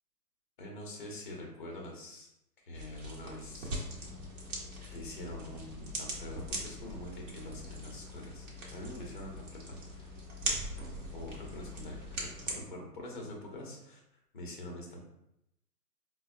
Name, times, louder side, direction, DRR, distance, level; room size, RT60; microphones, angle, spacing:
voice 1, 0.6-2.3 2.6-4.1 4.9-10.2 11.1-14.0 14.3-15.1, left 1 dB, 35° left, 0 dB, 0.5 m, -45 dB
sound 1, 2.7-12.5, right 1 dB, 50° right, 0.9 m, -41 dB
sound 2, 3.5-12.7, right 1 dB, 30° right, 0.5 m, -53 dB
4.0 x 2.1 x 2.4 m, 0.84 s
hypercardioid pair, 165°, 48 cm